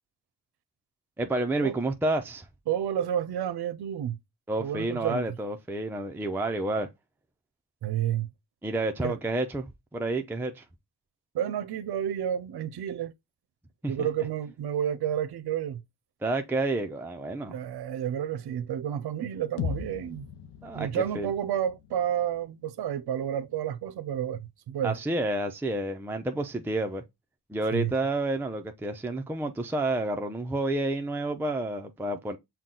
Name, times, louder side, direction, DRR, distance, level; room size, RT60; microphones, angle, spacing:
voice 1, 1.2-2.5 4.5-6.9 8.6-10.6 13.8-14.1 16.2-17.6 20.6-21.3 24.8-27.0 27.5-32.4, right 2 dB, 5° right, 0.5 m, -30 dB
voice 2, 2.7-4.2 4.6-5.2 7.8-8.3 9.0-9.2 11.3-13.1 13.9-15.8 17.5-20.3 20.7-25.0 27.7-27.9, right 10 dB, 70° right, 0.6 m, -30 dB
sound 1, 19.6-23.5, left 7 dB, 85° left, 0.7 m, -39 dB
5.8 x 2.3 x 3.8 m
cardioid pair, 65°, 40 cm